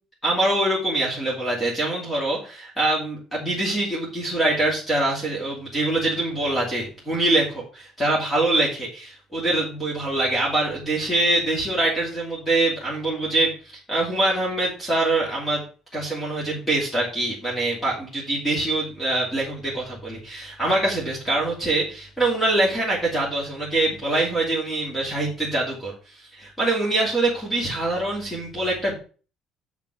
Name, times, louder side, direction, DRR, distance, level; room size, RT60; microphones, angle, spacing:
voice 1, 0.2-15.6 15.9-28.9, right 2 dB, 10° left, -4 dB, 2.7 m, -24 dB
7.2 x 5.9 x 5.8 m, 0.36 s
cardioid pair, 170°, 0 cm